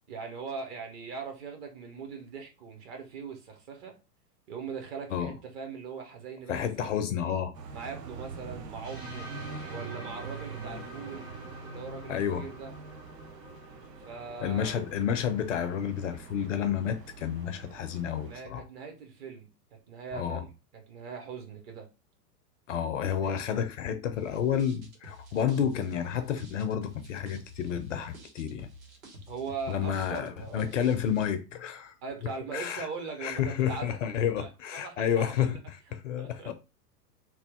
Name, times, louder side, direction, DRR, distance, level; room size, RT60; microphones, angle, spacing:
voice 1, 0.1-3.9 4.5-6.9 7.7-9.3 9.7-11.3 11.6-12.7 14.0-14.8 18.2-21.9 23.2-23.3 29.3-30.8 32.0-33.9 34.4-35.6 36.2-36.5, right 5 dB, 40° right, 1.0 m, -41 dB
voice 2, 6.5-7.5 12.1-12.4 14.4-18.6 20.1-20.4 22.7-28.7 29.7-31.9 32.5-32.9 33.2-36.5, left 8 dB, 50° left, 0.5 m, -30 dB
sound 1, 7.5-18.4, right 4 dB, 85° right, 0.6 m, -44 dB
sound 2, 8.8-16.7, right 1 dB, 10° right, 0.5 m, -48 dB
sound 3, 24.2-31.3, left 1 dB, 60° right, 1.4 m, -49 dB
3.0 x 2.3 x 3.3 m
figure-of-eight pair, 95°, 48 cm